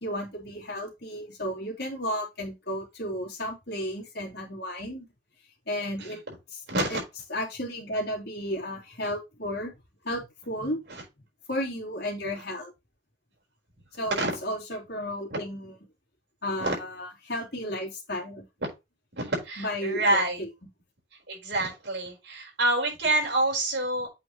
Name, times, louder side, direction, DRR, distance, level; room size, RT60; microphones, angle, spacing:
voice 1, 0.0-5.1 5.7-6.2 6.5-6.6 6.9-7.0 7.3-9.7 10.0-10.8 11.5-12.7 13.9-15.7 16.4-18.4 19.6-20.5, equal, 55° left, -3 dB, 3.2 m, -33 dB
voice 2, 6.0-6.3 6.7-7.0 10.9-11.0 14.0-14.3 16.6-16.7 18.6-18.7 19.1-20.4 21.3-24.1, right 2 dB, 65° right, -2 dB, 4.5 m, -27 dB
8.2 x 5.1 x 3.1 m, 0.23 s
head